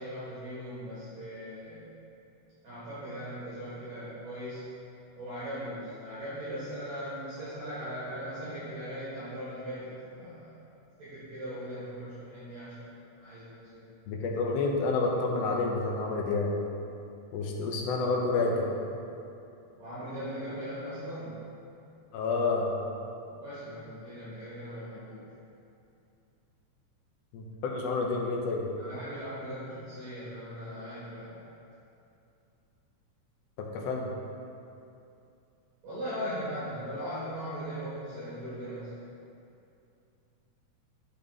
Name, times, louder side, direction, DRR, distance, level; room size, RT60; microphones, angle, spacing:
voice 1, 0.0-1.9 2.6-4.7 5.2-10.5 11.0-13.9 19.7-21.4 23.2-25.3 28.8-31.4 35.8-38.9, equal, 60° right, -12 dB, 2.9 m, -39 dB
voice 2, 14.1-16.5 17.3-18.7 22.1-22.7 27.3-28.7 33.6-34.1, left 3 dB, 75° left, -1 dB, 1.5 m, -29 dB
9.7 x 3.9 x 3.6 m, 2.7 s
omnidirectional pair, 3.7 m